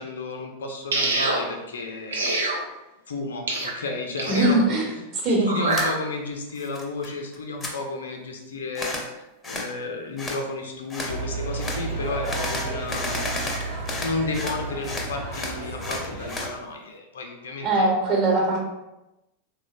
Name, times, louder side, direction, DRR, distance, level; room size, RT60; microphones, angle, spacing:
voice 1, 0.0-2.3 3.1-4.8 5.4-13.4 14.0-17.9, left 3 dB, 65° left, 3 dB, 0.4 m, -32 dB
sound 1, 0.9-1.4 2.1-2.6 3.5-3.7 4.2-4.6 5.5-5.9, right 2 dB, 65° right, 0.5 m, -25 dB
voice 2, 4.3-4.8 5.2-5.5 17.6-18.6, right 2 dB, 40° right, -4 dB, 1.0 m, -21 dB
sound 2, 5.7-5.9 6.3-7.1 7.3-7.7 8.7-9.1 9.4-9.7 10.2-10.4 10.9-11.1 11.6-11.8 12.2-14.6 14.8-16.5, left 2 dB, 15° left, 0.5 m, -32 dB
sound 3, 11.0-16.5, right 2 dB, 90° right, 1.2 m, -32 dB
3.6 x 2.1 x 2.5 m, 0.97 s
figure-of-eight pair, 90°, 0 cm